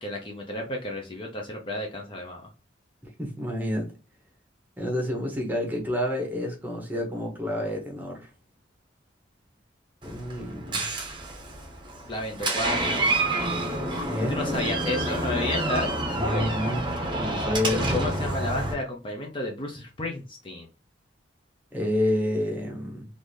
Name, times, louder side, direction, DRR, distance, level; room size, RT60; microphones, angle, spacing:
voice 1, 0.0-2.4 12.1-13.5 13.9-15.9 16.2-16.5 17.9-20.7, left 1 dB, 25° left, 0.6 m, -32 dB
voice 2, 3.2-3.9 4.8-8.3 10.0-10.9 14.1-14.6 16.1-16.9 17.2-18.3 21.7-23.1, left 1 dB, 10° right, 1.1 m, -29 dB
Door, 10.0-18.7, right 2 dB, 25° right, 0.8 m, -28 dB
3.8 x 2.6 x 3.2 m
head